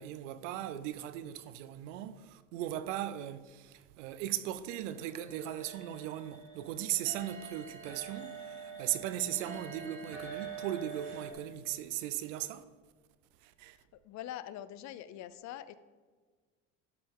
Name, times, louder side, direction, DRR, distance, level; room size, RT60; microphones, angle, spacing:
voice 1, 0.0-12.6 13.4-13.8, right 12 dB, 90° right, 0.6 m, -38 dB
sound 1, 4.9-11.3, right 5 dB, 35° right, 1.6 m, -46 dB
voice 2, 13.7-15.7, left 12 dB, 50° left, 0.5 m, -44 dB
12.0 x 5.4 x 3.7 m
supercardioid pair, 105°, 36 cm